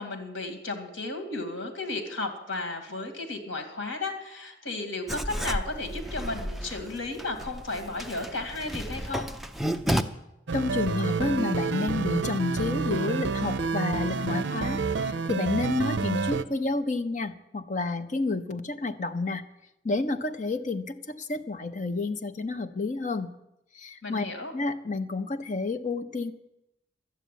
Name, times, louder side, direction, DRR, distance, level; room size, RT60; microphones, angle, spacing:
voice 1, 0.0-9.3 24.0-24.5, left 2 dB, 70° left, 6 dB, 2.3 m, -34 dB
Writing, 5.1-10.0, equal, ahead, 0.5 m, -32 dB
voice 2, 10.5-19.4 19.8-23.3 23.7-24.2 24.5-26.3, left 3 dB, 40° left, 10 dB, 0.7 m, -30 dB
sound 1, 10.5-16.4, right 4 dB, 60° right, 0.6 m, -29 dB
12.0 x 8.2 x 9.2 m, 0.87 s
head